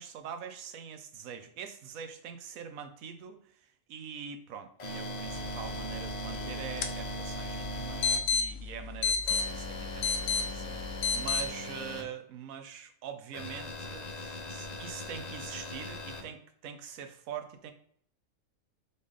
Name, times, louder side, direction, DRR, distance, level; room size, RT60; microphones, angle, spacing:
voice 1, 0.0-17.7, right 8 dB, 90° right, 8 dB, 1.1 m, -44 dB
sound 1, 4.8-8.2 9.3-12.0 13.3-16.2, equal, 40° left, 0.7 m, -39 dB
sound 2, 5.3-11.5, left 5 dB, 75° left, 0.9 m, -33 dB
4.1 x 3.3 x 3.5 m, 0.64 s
omnidirectional pair, 1.4 m